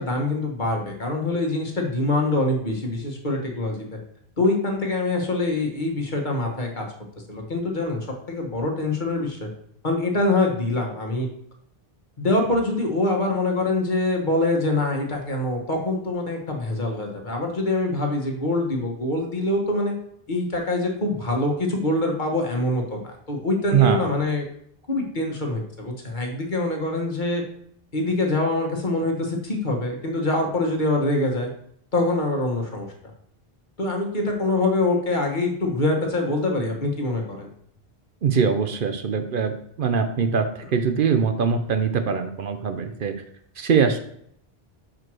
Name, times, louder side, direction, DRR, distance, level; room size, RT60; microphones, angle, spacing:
voice 1, 0.0-4.0 4.4-6.8 7.3-8.0 8.3-9.5 9.8-11.3 12.2-19.9 20.3-24.4 24.9-27.4 27.9-31.5 31.9-32.9 33.8-37.5, left 2 dB, 50° left, 1 dB, 1.5 m, -24 dB
voice 2, 23.7-24.1 38.2-39.5 39.8-43.1 43.6-44.0, right 6 dB, 60° right, 8 dB, 0.8 m, -22 dB
5.1 x 4.5 x 6.1 m, 0.68 s
omnidirectional pair, 1.0 m